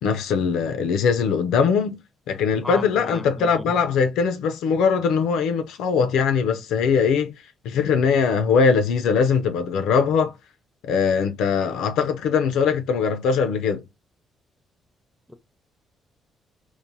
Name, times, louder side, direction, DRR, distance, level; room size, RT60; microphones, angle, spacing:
voice 1, 0.0-7.3 7.6-10.3 10.8-13.8, left 6 dB, 90° left, 0.3 m, -21 dB
voice 2, 2.6-3.7 15.3-15.4, equal, 10° left, 0.5 m, -35 dB
3.0 x 2.1 x 2.6 m
cardioid pair, 90°, 0 cm